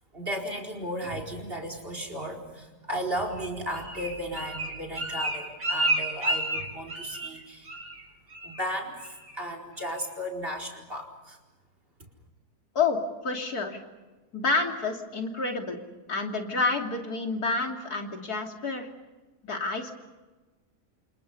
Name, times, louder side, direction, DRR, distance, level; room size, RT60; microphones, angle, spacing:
voice 1, 0.1-7.7 8.4-11.4, equal, 35° right, 4 dB, 4.9 m, -35 dB
Bird, 3.3-7.4 7.7-8.0 8.3-8.7 9.0-9.4 9.8-9.9, right 2 dB, 60° right, 5.4 m, -31 dB
voice 2, 13.2-13.8 14.3-15.8 16.1-18.9 19.4-19.9, left 3 dB, 70° left, 3 dB, 3.4 m, -29 dB
29.0 x 28.0 x 5.5 m, 1.2 s
omnidirectional pair, 1.7 m